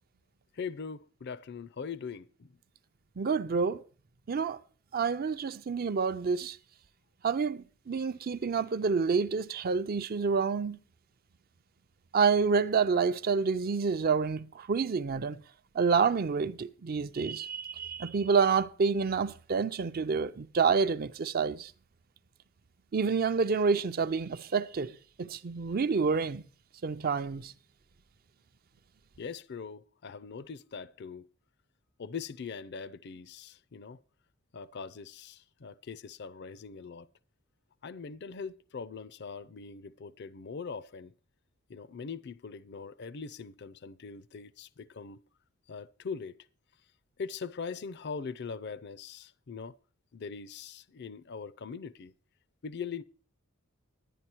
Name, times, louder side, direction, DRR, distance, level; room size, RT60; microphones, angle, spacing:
voice 1, 0.5-2.5 29.2-31.3 32.0-34.0 34.5-37.1 37.8-41.1 41.7-45.2 45.7-46.4 47.2-49.7 50.1-52.1 52.6-53.0, left 5 dB, 50° left, 0.5 m, -41 dB
voice 2, 3.2-3.8 4.3-4.6 4.9-6.6 7.2-10.8 12.1-15.4 15.8-21.7 22.9-26.4 26.8-27.5, right 5 dB, 45° right, 0.5 m, -28 dB
11.0 x 10.0 x 4.5 m
head